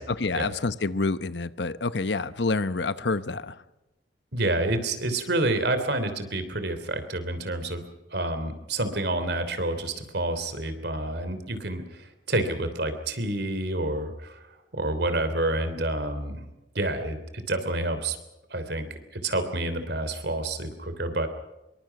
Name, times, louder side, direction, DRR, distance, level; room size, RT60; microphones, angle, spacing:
voice 1, 0.0-3.6, left 3 dB, 70° left, 0.9 m, -28 dB
voice 2, 4.3-7.8 8.1-14.4 14.7-16.5 16.7-18.2 18.5-18.8 19.1-21.3, right 2 dB, 60° right, 3.3 m, -28 dB
26.0 x 23.0 x 6.0 m
head